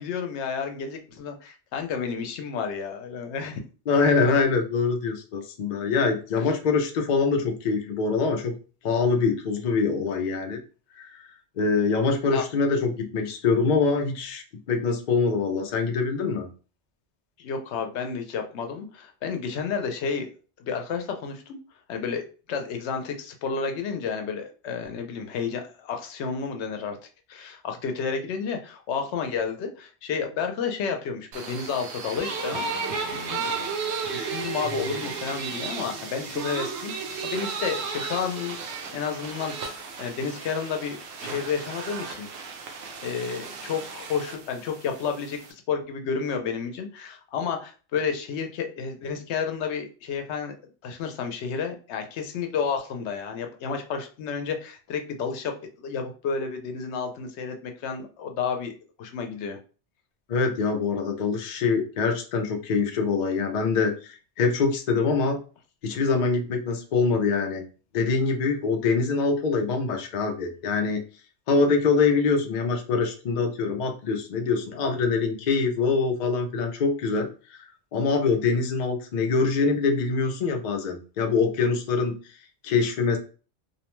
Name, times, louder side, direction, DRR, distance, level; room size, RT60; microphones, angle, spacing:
voice 1, 0.0-3.6 12.3-12.4 17.4-20.3 20.6-21.6 21.9-27.0 27.3-32.7 33.1-33.5 34.1-42.3 43.0-50.5 50.8-58.7 59.0-59.6, left 6 dB, 90° left, 5 dB, 0.9 m, -31 dB
voice 2, 3.9-8.5 8.8-10.6 11.0-11.2 11.6-14.4 14.7-16.5 60.3-65.4 65.8-67.6 67.9-71.0 71.5-77.6 77.9-82.2 82.6-83.2, left 4 dB, 55° left, 4 dB, 0.5 m, -24 dB
sound 1, 31.3-45.5, right 5 dB, 75° right, 0.8 m, -34 dB
2.5 x 2.1 x 3.0 m, 0.36 s
omnidirectional pair, 1.1 m